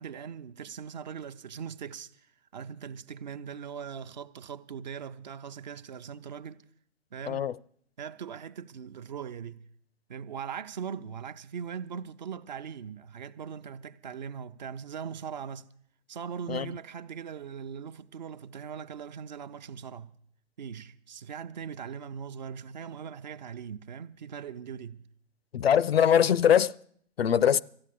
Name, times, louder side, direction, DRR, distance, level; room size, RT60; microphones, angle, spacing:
voice 1, 0.0-6.6 7.1-7.5 8.0-9.7 10.1-15.7 16.1-20.2 20.6-25.1, right 7 dB, 40° right, 0.7 m, -40 dB
voice 2, 25.5-26.7 27.2-27.6, left 9 dB, 60° left, 0.5 m, -22 dB
14.0 x 8.7 x 8.5 m
figure-of-eight pair, 130°, 35 cm